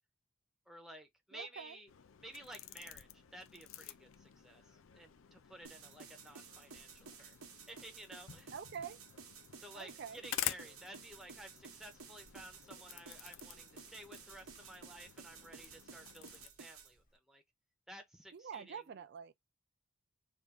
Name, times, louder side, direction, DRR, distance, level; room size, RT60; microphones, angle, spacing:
voice 1, 0.7-1.9 2.2-7.4 7.7-8.5 9.5-17.4 17.9-18.8, right 1 dB, ahead, 0.6 m, -54 dB
voice 2, 1.3-1.8 8.5-9.0 9.7-10.2 18.3-19.3, right 7 dB, 50° right, 0.4 m, -46 dB
sound 1, 1.9-16.5, left 11 dB, 65° left, 0.4 m, -49 dB
sound 2, 5.6-16.9, right 6 dB, 85° right, 0.9 m, -54 dB
Chewing mastication, 11.0-17.2, equal, 40° left, 1.0 m, -71 dB
3.4 x 2.4 x 3.5 m
head